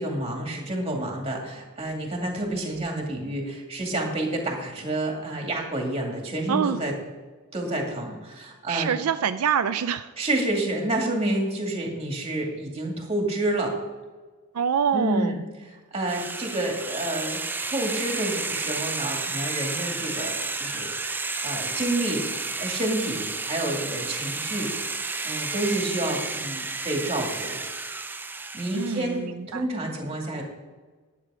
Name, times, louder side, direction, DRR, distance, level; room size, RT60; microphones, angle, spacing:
voice 1, 0.0-7.0 7.5-9.0 10.2-13.7 14.9-21.0 21.4-22.3 22.6-24.7 25.2-27.6 28.5-30.4, right 1 dB, 25° right, 1 dB, 2.2 m, -29 dB
voice 2, 8.7-10.1 14.5-15.3 28.7-29.6, right 7 dB, 90° right, 10 dB, 0.4 m, -25 dB
sound 1, 16.1-29.1, right 3 dB, 10° right, 0.4 m, -31 dB
11.0 x 8.4 x 4.9 m, 1.3 s
head